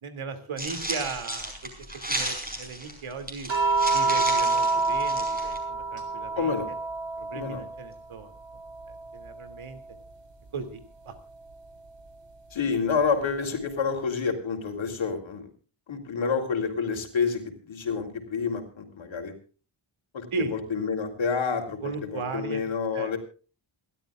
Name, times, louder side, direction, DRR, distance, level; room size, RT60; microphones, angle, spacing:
voice 1, 0.0-3.5 3.9-6.6 7.2-8.3 8.9-9.8 10.5-11.1 20.3-20.5 21.8-22.6 22.9-23.1, right 4 dB, 80° right, 8 dB, 2.7 m, -36 dB
sound 1, 0.6-5.6, right 1 dB, 20° right, 5.3 m, -34 dB
sound 2, 3.5-8.0 8.3-10.0 11.5-11.7, right 3 dB, 60° right, 3.7 m, -28 dB
voice 2, 6.4-6.7 7.3-7.6 12.5-15.5 15.9-19.3 20.1-23.2, left 5 dB, 70° left, 5 dB, 3.6 m, -28 dB
28.5 x 13.0 x 2.4 m, 0.37 s
wide cardioid pair, 180°, 49 cm